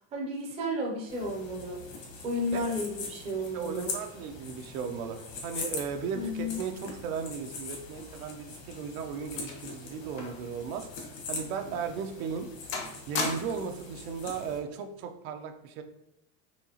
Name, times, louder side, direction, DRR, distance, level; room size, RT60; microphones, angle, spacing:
voice 1, 0.1-1.8 2.2-3.9 6.1-6.6, left 1 dB, 15° right, -1 dB, 0.4 m, -33 dB
sound 1, 1.1-14.6, left 4 dB, 75° left, 1.4 m, -42 dB
voice 2, 3.4-12.5 13.1-15.8, right 6 dB, 85° right, 6 dB, 0.7 m, -36 dB
sound 2, 8.6-10.5 10.8-11.0 11.6-11.8 12.2-12.5 12.7-13.8 14.8-15.0, left 4 dB, 35° left, 0.5 m, -37 dB
4.4 x 2.8 x 2.8 m, 0.85 s
cardioid pair, 170°, 42 cm